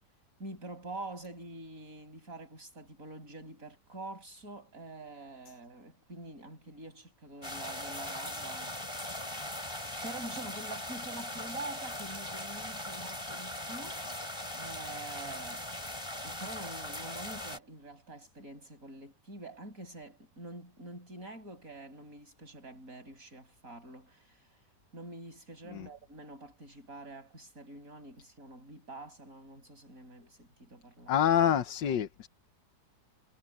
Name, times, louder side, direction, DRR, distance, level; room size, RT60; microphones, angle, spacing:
voice 1, 0.4-9.0 10.0-14.0 14.6-15.7 16.2-24.5 24.9-31.3, right 2 dB, 50° right, 7.1 m, -46 dB
sound 1, 7.4-17.6, left 1 dB, 15° left, 4.3 m, -40 dB
voice 2, 14.3-14.6 25.7-25.9 31.1-32.3, left 9 dB, 85° left, 1.7 m, -27 dB
omnidirectional pair, 1.9 m